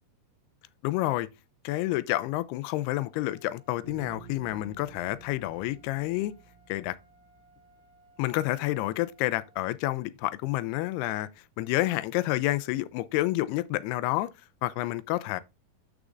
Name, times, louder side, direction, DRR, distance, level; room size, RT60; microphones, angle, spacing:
voice 1, 0.8-1.3 1.6-6.3 6.7-7.0 8.2-11.3 11.6-14.3 14.6-15.4, left 17 dB, 85° left, 2.5 m, -29 dB
Trumpet, 3.1-9.6, equal, 40° right, 1.3 m, -63 dB
Bass guitar, 3.8-7.9, right 5 dB, 30° left, 5.0 m, -50 dB
13.0 x 4.8 x 2.5 m
omnidirectional pair, 4.6 m